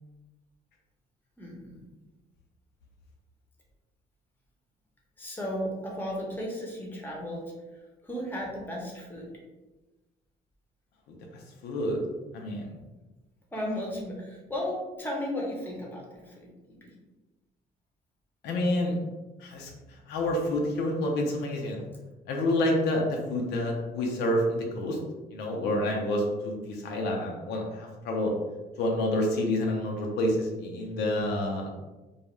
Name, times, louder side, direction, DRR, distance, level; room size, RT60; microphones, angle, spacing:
voice 1, 1.4-1.8 5.2-9.3 12.8-12.9 13.5-16.9, equal, 10° left, -2 dB, 0.8 m, -35 dB
voice 2, 11.6-12.0 12.3-12.7 18.4-19.0 19.4-19.7 20.1-21.8 22.3-25.0 25.3-28.3 28.8-31.7, left 1 dB, 80° left, 0 dB, 0.6 m, -28 dB
2.3 x 2.3 x 3.0 m, 1.1 s
cardioid pair, 110°, 17 cm